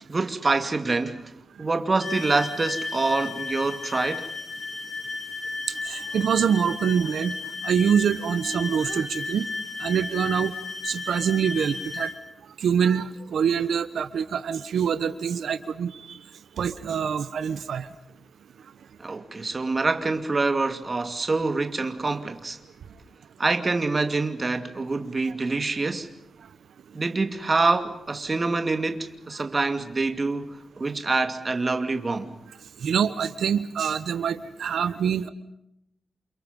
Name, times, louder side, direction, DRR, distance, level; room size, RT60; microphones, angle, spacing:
voice 1, 0.1-1.3 1.6-4.3 19.0-22.6 23.4-26.1 26.9-32.3, right 3 dB, 30° right, 2.5 m, -26 dB
sound 1, 2.0-12.2, left 4 dB, 45° left, 4.2 m, -34 dB
voice 2, 5.9-7.3 7.6-9.5 9.8-10.5 10.8-12.1 12.6-16.2 16.6-17.9 32.8-35.3, right 7 dB, 90° right, 1.2 m, -25 dB
29.0 x 28.5 x 5.5 m
wide cardioid pair, 135°, 0 cm